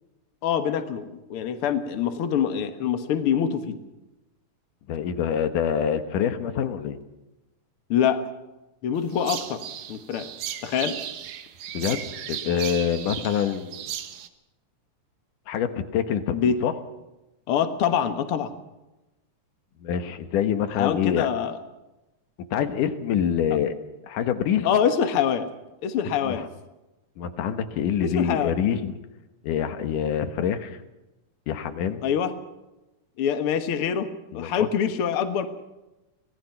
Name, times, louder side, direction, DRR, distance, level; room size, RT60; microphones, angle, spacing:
voice 1, 0.4-3.8 7.9-8.3 8.8-9.6 9.9-10.3 10.6-11.0 16.3-16.6 17.5-18.5 20.7-21.6 24.6-25.5 25.8-26.5 28.0-28.6 32.0-32.3 33.2-34.1 34.3-35.5, left 8 dB, 55° left, 8 dB, 2.0 m, -25 dB
voice 2, 4.9-7.0 11.7-12.0 12.3-13.8 15.5-16.7 19.8-21.3 22.5-23.7 24.1-24.7 26.2-26.5 27.2-29.0 29.4-30.8 31.5-32.0 34.3-34.7, left 8 dB, 85° left, 9 dB, 2.9 m, -26 dB
sound 1, 9.1-14.3, right 10 dB, 85° right, 2.8 m, -36 dB
25.0 x 18.0 x 5.9 m, 0.99 s
omnidirectional pair, 3.6 m